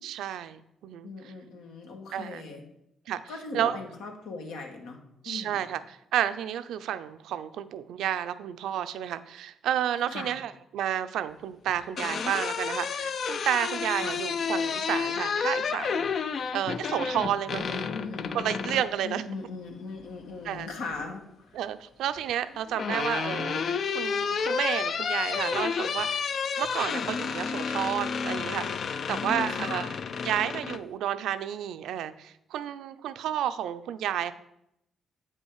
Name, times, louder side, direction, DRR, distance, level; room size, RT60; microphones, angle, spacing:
voice 1, 0.0-1.3 2.1-2.4 3.1-3.2 3.5-3.8 5.2-16.1 16.5-17.9 18.3-19.2 20.4-20.7 21.5-23.6 23.9-26.3 26.6-28.8 29.1-29.9 30.2-34.3, right 10 dB, 80° right, 12 dB, 0.5 m, -31 dB
voice 2, 1.0-2.6 3.3-5.0 5.2-5.7 10.1-10.4 13.9-14.2 17.5-18.3 19.0-21.6 29.1-29.9, left 4 dB, 90° left, 2 dB, 1.6 m, -39 dB
sound 1, 11.7-18.9 20.4-21.1 22.3-30.8, left 6 dB, 55° left, 0.4 m, -31 dB
8.3 x 5.5 x 4.8 m, 0.79 s
cardioid pair, 90°, 0 cm